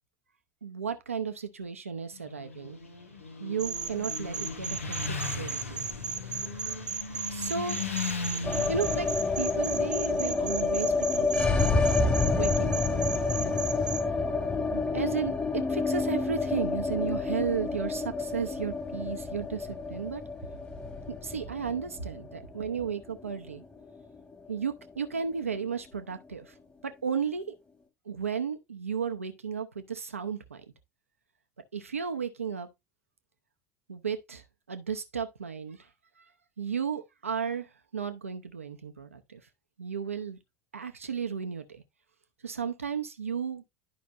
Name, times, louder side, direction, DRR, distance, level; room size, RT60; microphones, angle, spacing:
voice 1, 0.6-2.8 3.4-6.4 7.3-7.8 8.7-9.1 9.4-12.1 12.4-13.6 14.7-20.2 21.2-23.6 24.5-26.5 26.8-27.6 28.1-30.6 31.7-32.7 33.9-35.9 36.6-39.4 39.8-40.4 40.7-41.8 42.4-43.6, right 6 dB, 85° right, 0.7 m, -34 dB
Motorcycle, 2.1-11.9, left 4 dB, 85° left, 1.0 m, -38 dB
sound 1, 3.6-14.0, right 5 dB, 10° right, 1.1 m, -37 dB
sound 2, 8.4-24.6 24.8-24.9 25.2-25.9, left 3 dB, 20° left, 1.9 m, -29 dB
11.5 x 5.1 x 2.5 m
figure-of-eight pair, 65°, 7 cm